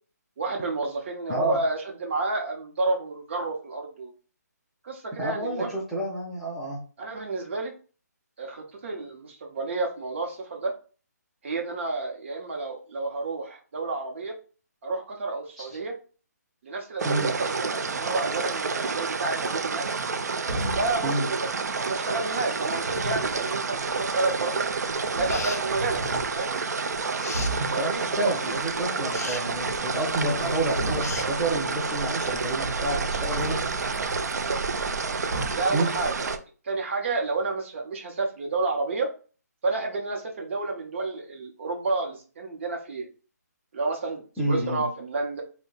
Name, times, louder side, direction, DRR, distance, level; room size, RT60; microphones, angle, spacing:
voice 1, 0.4-4.1 4.8-5.8 7.0-7.7 8.4-10.7 11.4-14.3 14.8-15.9 16.6-19.8 20.8-21.4 21.6-24.7 25.2-26.5 27.7-28.3 30.4-30.5 34.3-34.6 35.5-36.1 36.6-39.1 39.6-43.1 43.7-45.4, right 3 dB, 45° right, 1 dB, 0.8 m, -30 dB
voice 2, 5.2-6.8 15.6-15.7 17.0-17.3 21.0-21.3 27.6-33.6 35.7-35.9 44.4-44.8, right 1 dB, ahead, -6 dB, 0.5 m, -29 dB
sound 1, 17.0-36.4, right 4 dB, 70° right, 0.4 m, -29 dB
sound 2, 20.5-21.1 22.7-23.4 24.6-24.7 25.1-26.4 26.9-27.0 27.3-27.8 29.4-30.0 30.3-31.4 33.4-34.3 35.3-35.8, right 1 dB, 90° right, 0.8 m, -34 dB
sound 3, 25.3-25.7 27.2-27.6 29.1-29.4 31.0-31.3, left 4 dB, 55° left, 0.5 m, -35 dB
2.7 x 2.1 x 3.9 m, 0.37 s
figure-of-eight pair, 155°, 9 cm